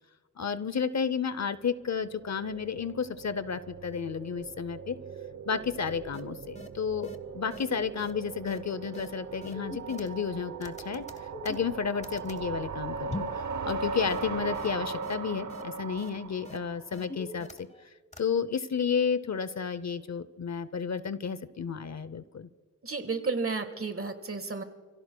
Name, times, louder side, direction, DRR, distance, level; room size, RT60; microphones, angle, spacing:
voice 1, 0.4-5.0 5.5-13.2 13.6-22.5, left 6 dB, 50° left, 14 dB, 0.6 m, -32 dB
sound 1, 1.9-17.1, right 4 dB, 55° right, 0.8 m, -39 dB
sound 2, 6.1-6.2 6.5-6.7 7.0-7.2 7.5-7.6 8.0-8.1 8.5-8.6 8.9-9.1 9.4-10.3 10.6-12.4 13.1-13.4 13.7-13.8 14.1-14.2 14.5-14.7 15.0-15.1 15.5-15.6 16.0-16.1 16.4-16.6 16.9-17.8 18.1-18.2, left 2 dB, 20° left, 0.9 m, -42 dB
voice 2, 22.8-24.6, right 4 dB, 40° right, 8 dB, 1.5 m, -32 dB
29.5 x 16.5 x 2.2 m, 1.5 s
wide cardioid pair, 100°, 35 cm